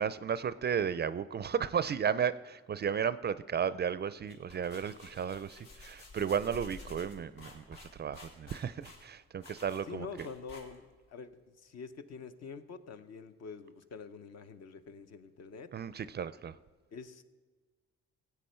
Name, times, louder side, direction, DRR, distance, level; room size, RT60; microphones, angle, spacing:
voice 1, 0.0-10.3 15.7-16.5, right 7 dB, 35° right, 16 dB, 0.4 m, -34 dB
sound 1, 4.1-11.0, left 3 dB, 80° left, 2.4 m, -52 dB
voice 2, 9.9-11.3 11.6-15.7 16.9-17.2, left 5 dB, 60° left, 10 dB, 0.8 m, -46 dB
16.0 x 8.2 x 4.4 m, 1.4 s
cardioid pair, 90°, 30 cm